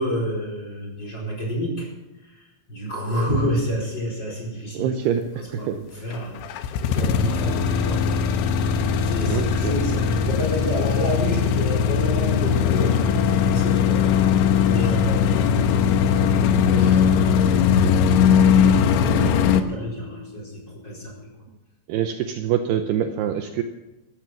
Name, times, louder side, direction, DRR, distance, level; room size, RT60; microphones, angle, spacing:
voice 1, 0.0-1.9 2.2-4.9 5.4-8.2 8.8-14.3 14.6-17.9 18.3-19.3 19.6-21.3, equal, 20° left, -2 dB, 4.8 m, -29 dB
voice 2, 4.7-6.0 9.3-9.8 21.9-23.6, right 9 dB, 90° right, 7 dB, 2.3 m, -25 dB
sound 1, 6.1-19.6, left 7 dB, 75° left, 3.1 m, -20 dB
sound 2, 7.3-21.3, left 10 dB, 50° left, 9.8 m, -37 dB
15.5 x 14.0 x 6.1 m, 0.99 s
omnidirectional pair, 5.8 m